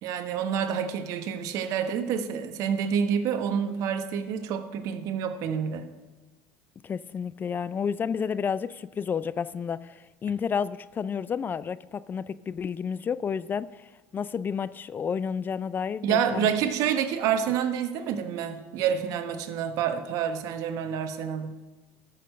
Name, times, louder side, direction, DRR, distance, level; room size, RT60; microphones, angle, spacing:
voice 1, 0.0-5.9 16.0-21.5, right 8 dB, 65° right, 1.1 m, -28 dB
voice 2, 6.8-16.5, left 6 dB, 30° left, 0.4 m, -31 dB
13.0 x 6.6 x 6.5 m
supercardioid pair, 90°, 6 cm